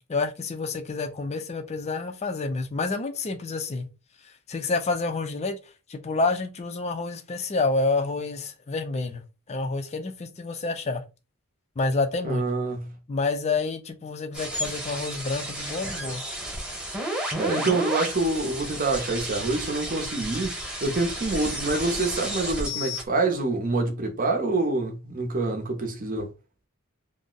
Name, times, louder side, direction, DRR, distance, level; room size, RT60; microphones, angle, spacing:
voice 1, 0.0-3.9 4.2-5.6 5.9-11.0 11.8-12.5 13.1-16.2, left 3 dB, 30° left, 0.4 m, -28 dB
voice 2, 12.2-12.9 17.4-20.5 20.8-26.3, right 3 dB, 40° right, 0.7 m, -26 dB
sound 1, 14.3-23.0, equal, 5° right, 1.0 m, -32 dB
2.5 x 2.0 x 3.8 m
head